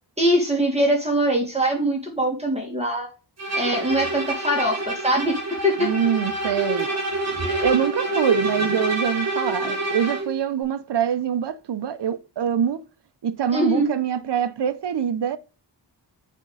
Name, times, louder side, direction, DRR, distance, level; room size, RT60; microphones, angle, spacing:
voice 1, 0.2-3.1 3.5-5.3 5.6-5.9 7.4-7.7 13.5-13.9, right 1 dB, 15° right, 2.0 m, -22 dB
Bowed string instrument, 3.4-10.3, right 2 dB, 35° right, 2.0 m, -27 dB
voice 2, 5.8-6.9 7.6-12.8 13.2-15.4, right 8 dB, 65° right, 0.7 m, -24 dB
8.2 x 3.6 x 3.9 m
wide cardioid pair, 100°, 44 cm